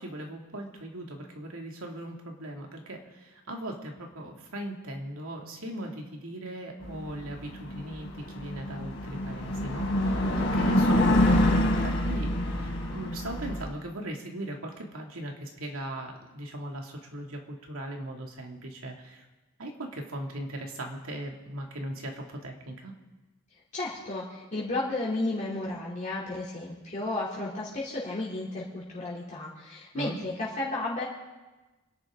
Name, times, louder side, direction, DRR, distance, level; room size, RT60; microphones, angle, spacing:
voice 1, 0.0-19.3 19.6-22.9 29.9-30.2, right 1 dB, 75° right, 1 dB, 2.4 m, -39 dB
sound 1, 6.8-13.6, left 1 dB, 60° left, 3.2 m, -26 dB
voice 2, 23.7-31.0, left 2 dB, 35° left, -7 dB, 3.1 m, -33 dB
29.0 x 11.0 x 3.8 m, 1.2 s
head